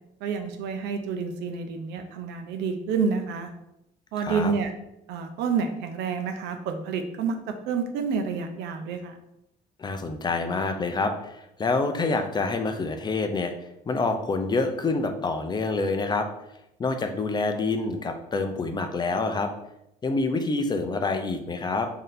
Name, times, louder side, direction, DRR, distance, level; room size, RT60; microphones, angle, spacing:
voice 1, 0.2-3.5 4.1-4.7 5.1-7.4 7.7-9.1, right 5 dB, 85° right, 6 dB, 0.6 m, -29 dB
voice 2, 4.2-4.5 9.8-13.5 13.9-16.3 16.8-19.5 20.0-21.9, left 3 dB, 25° left, 6 dB, 0.4 m, -27 dB
3.2 x 2.8 x 3.9 m, 0.82 s
cardioid pair, 110°, 17 cm